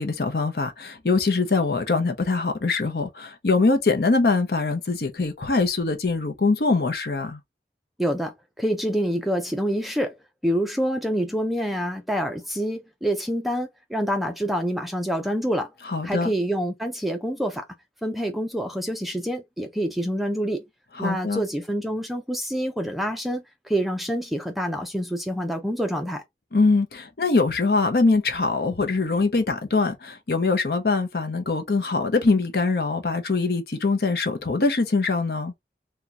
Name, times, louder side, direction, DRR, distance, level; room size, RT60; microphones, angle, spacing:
voice 1, 0.0-7.4 15.9-16.3 21.0-21.4 26.5-35.5, left 3 dB, 60° left, 0.7 m, -23 dB
voice 2, 8.0-10.2 10.4-15.7 16.0-17.6 18.0-20.7 21.0-26.2, equal, ahead, 0.4 m, -27 dB
3.8 x 2.2 x 2.8 m
head